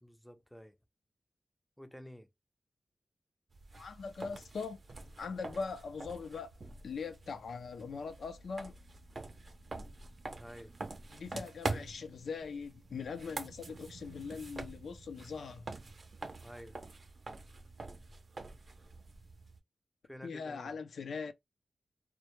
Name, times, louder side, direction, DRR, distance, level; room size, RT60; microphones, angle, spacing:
voice 1, 0.0-0.8 1.8-2.3 10.4-10.7 16.4-16.8 20.1-20.8, equal, 5° left, 0.4 m, -51 dB
sound 1, 3.5-19.6, right 3 dB, 55° right, 0.5 m, -46 dB
voice 2, 3.7-4.8 5.2-6.5 6.8-8.7 11.1-15.7 20.2-21.3, left 5 dB, 85° left, 0.3 m, -41 dB
2.1 x 2.0 x 2.9 m
wide cardioid pair, 80°, 0 cm